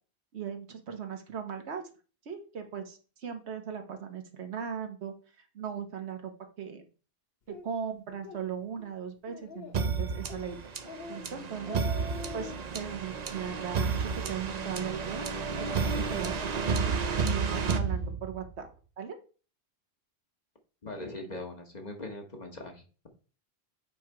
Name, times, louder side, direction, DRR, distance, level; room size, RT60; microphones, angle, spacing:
voice 1, 0.3-1.8 2.2-6.3 6.6-6.8 7.5-10.6 11.1-11.8 12.3-18.7 19.0-19.2, right 7 dB, 85° right, 6 dB, 1.3 m, -38 dB
Speech, 7.5-7.7 8.1-8.4 8.8-8.9 9.3-9.9 10.3-10.5 10.8-11.2 11.5-12.6, left 3 dB, 65° left, 1.1 m, -43 dB
sound 1, 9.7-18.6, right 5 dB, 45° right, 0.7 m, -31 dB
voice 2, 20.8-23.1, left 2 dB, 40° left, 3 dB, 1.3 m, -41 dB
8.4 x 3.2 x 4.6 m, 0.37 s
omnidirectional pair, 1.1 m